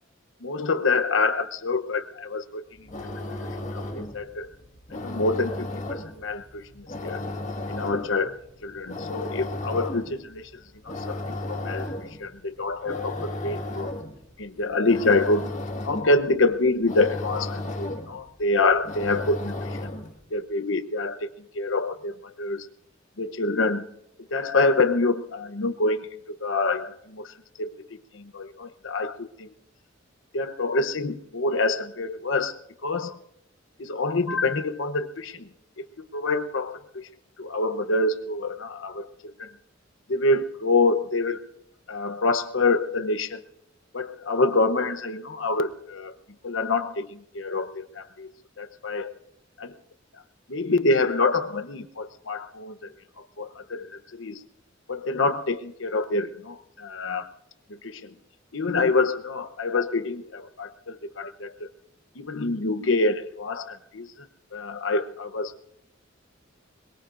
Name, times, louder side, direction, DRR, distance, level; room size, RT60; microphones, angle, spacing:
voice 1, 0.4-2.9 3.2-3.3 3.7-4.5 4.9-7.2 7.7-8.4 8.6-10.5 10.8-11.9 12.2-13.9 14.4-15.5 15.8-19.9 20.3-21.3 21.5-22.7 23.2-23.9 24.3-29.5 30.3-32.5 32.8-33.2 33.8-35.5 35.8-37.1 37.4-39.5 40.1-41.4 41.9-43.4 43.9-46.1 46.4-48.3 48.6-49.1 49.6-49.8 50.5-54.4 54.9-57.3 57.7-58.1 58.5-61.7 62.2-64.3 64.5-65.5, left 3 dB, 70° left, 9 dB, 0.9 m, -26 dB
sound 1, 2.7-20.2, left 2 dB, 40° left, 1.8 m, -35 dB
22.0 x 22.0 x 2.6 m, 0.80 s
head